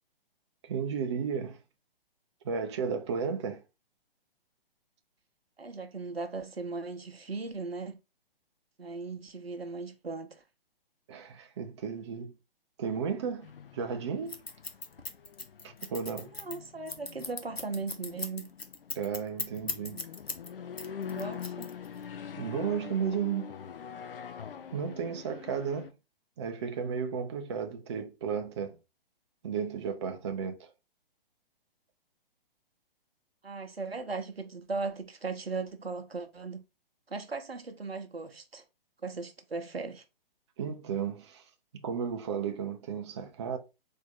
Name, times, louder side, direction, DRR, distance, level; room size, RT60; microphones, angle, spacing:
voice 1, 0.6-1.6 2.4-3.6 11.1-12.3 12.8-13.5 13.7-14.4 15.6-16.3 18.9-20.1 22.4-23.5 24.7-25.9 26.4-28.8 29.4-30.7 40.6-41.4 41.7-43.6, right 6 dB, 30° right, 0.5 m, -33 dB
voice 2, 5.6-8.0 8.8-10.4 16.2-18.5 21.0-21.7 33.4-36.6 37.1-38.6 39.0-40.0, right 4 dB, 90° right, 0.8 m, -38 dB
sound 1, 13.4-25.9, left 7 dB, 70° left, 0.5 m, -44 dB
Scissors, 14.3-20.5 20.8-22.0, left 3 dB, 90° left, 0.9 m, -38 dB
4.2 x 2.7 x 3.7 m
figure-of-eight pair, 130°, 30 cm